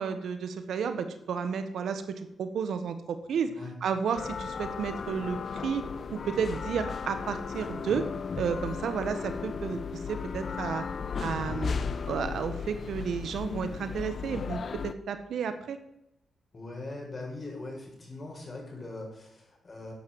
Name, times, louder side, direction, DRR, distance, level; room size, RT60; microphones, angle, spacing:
voice 1, 0.0-3.5 3.8-8.1 8.4-10.8 11.2-11.7 12.1-15.8, right 6 dB, 80° right, 10 dB, 1.4 m, -32 dB
sound 1, 4.1-14.9, left 6 dB, 60° left, 0.7 m, -35 dB
voice 2, 16.5-19.9, left 2 dB, 45° left, 0 dB, 6.6 m, -41 dB
12.0 x 9.0 x 8.0 m, 0.82 s
cardioid pair, 55°, 0 cm